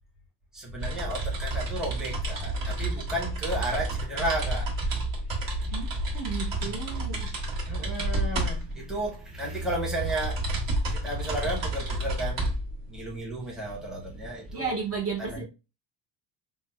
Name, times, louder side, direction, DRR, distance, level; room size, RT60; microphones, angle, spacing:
voice 1, 0.5-5.8 6.0-6.4 7.7-10.5 10.9-12.5 12.9-14.7 15.2-15.4, right 1 dB, ahead, 0.8 m, -33 dB
sound 1, 0.8-14.5, right 1 dB, 50° right, 1.4 m, -31 dB
voice 2, 5.7-7.3 14.5-15.4, right 5 dB, 30° right, 0.6 m, -33 dB
5.7 x 2.1 x 2.2 m
cardioid pair, 175°, 46 cm